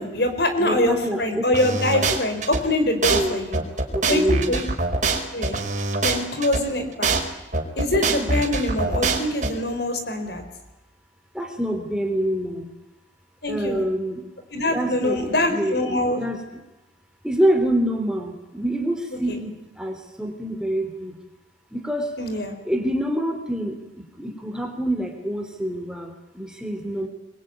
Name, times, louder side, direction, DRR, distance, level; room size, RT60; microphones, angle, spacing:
voice 1, 0.0-3.6 4.0-4.6 5.3-5.6 6.0-7.1 7.8-10.4 13.4-13.8 14.5-16.2 19.3-19.4 22.2-22.5, left 1 dB, 55° left, 7 dB, 4.8 m, -24 dB
voice 2, 0.6-1.4 3.1-3.4 3.9-4.5 11.3-12.7 13.4-14.2 14.7-16.4 17.2-21.2 21.7-22.2 22.6-27.1, right 1 dB, 5° right, 4 dB, 3.5 m, -26 dB
sound 1, 1.5-2.6 3.0-3.2 3.5-6.6 7.0-7.2 7.5-9.5, right 3 dB, 40° right, 4.7 m, -23 dB
25.5 x 22.5 x 9.6 m, 1.0 s
head